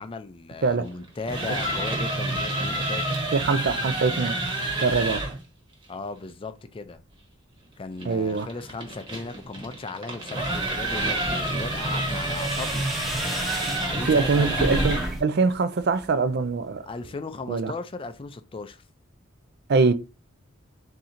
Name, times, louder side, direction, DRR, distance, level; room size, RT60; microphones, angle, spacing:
voice 1, 0.0-3.2 5.9-7.0 7.8-12.9 13.6-14.8 16.9-18.8, left 3 dB, 25° left, 0.4 m, -37 dB
sound 1, 1.1-5.4 8.0-15.2, right 1 dB, 25° right, 1.1 m, -29 dB
voice 2, 3.3-4.4 4.8-5.3 8.0-8.5 14.0-16.9 17.5-17.7 19.7-19.9, right 4 dB, 50° right, 0.4 m, -23 dB
sound 2, 10.5-15.2 15.5-16.1, right 1 dB, ahead, 0.8 m, -32 dB
3.7 x 2.7 x 4.2 m
head